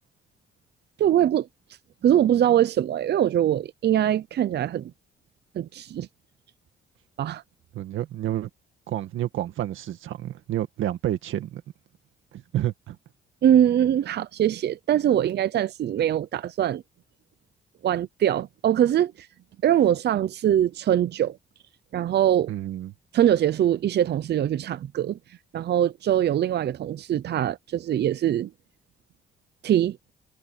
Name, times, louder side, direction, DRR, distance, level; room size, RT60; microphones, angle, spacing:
voice 1, 1.0-1.5 2.0-4.9 5.5-6.1 7.2-7.4 13.4-16.8 17.8-19.3 19.6-21.4 21.9-22.5 23.1-25.2 25.5-28.5 29.6-30.0, right 11 dB, 55° right, 0.7 m, -22 dB
voice 2, 7.7-8.5 8.9-11.6 12.3-13.0 22.5-22.9, right 12 dB, 80° right, 2.0 m, -29 dB
cardioid pair, 90°, 20 cm